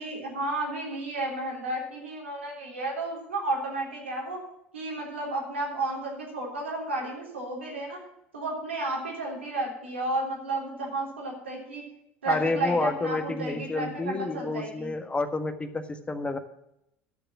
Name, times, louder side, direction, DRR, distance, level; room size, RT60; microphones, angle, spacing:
voice 1, 0.0-4.4 4.7-8.0 8.3-11.8 12.2-14.9, right 2 dB, 85° right, -2 dB, 3.6 m, -32 dB
voice 2, 12.3-16.4, left 3 dB, 15° left, 9 dB, 1.5 m, -29 dB
12.0 x 6.8 x 7.2 m, 0.78 s
figure-of-eight pair, 70°, 6 cm